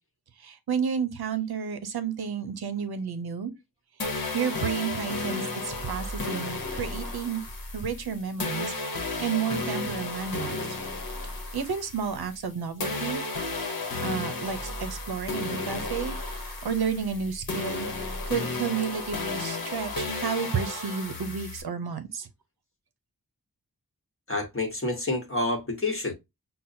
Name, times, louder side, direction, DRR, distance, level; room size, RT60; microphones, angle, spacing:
voice 1, 0.4-3.5 4.3-7.4 7.7-10.8 11.5-13.2 14.0-17.9 18.3-22.3, right 6 dB, 85° right, 0.7 m, -31 dB
sound 1, 4.0-12.5 12.8-21.6, left 3 dB, 65° left, 0.9 m, -33 dB
voice 2, 24.3-26.1, left 2 dB, 35° left, 1.1 m, -28 dB
5.8 x 2.1 x 2.6 m
wide cardioid pair, 60°, 37 cm